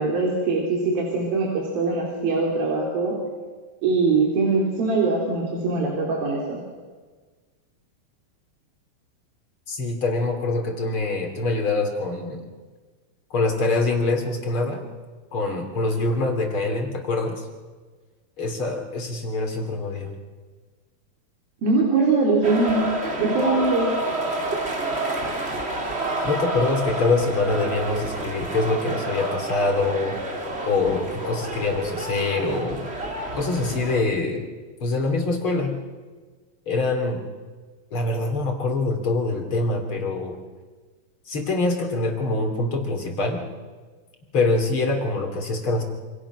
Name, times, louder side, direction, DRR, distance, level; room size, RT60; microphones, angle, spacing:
voice 1, 0.0-3.2 3.8-6.6 21.6-22.8 23.2-23.9, right 3 dB, 65° right, -2 dB, 5.1 m, -22 dB
voice 2, 9.7-12.4 13.3-14.8 15.3-17.4 18.4-20.1 26.2-30.2 30.7-32.9 33.3-34.5 34.8-35.7 36.7-37.2 37.9-40.3 41.3-43.4 44.3-45.8, left 3 dB, 35° left, 3 dB, 3.6 m, -24 dB
sound 1, 22.4-34.0, right 2 dB, 20° right, 2.0 m, -29 dB
27.0 x 27.0 x 6.3 m, 1.4 s
omnidirectional pair, 4.6 m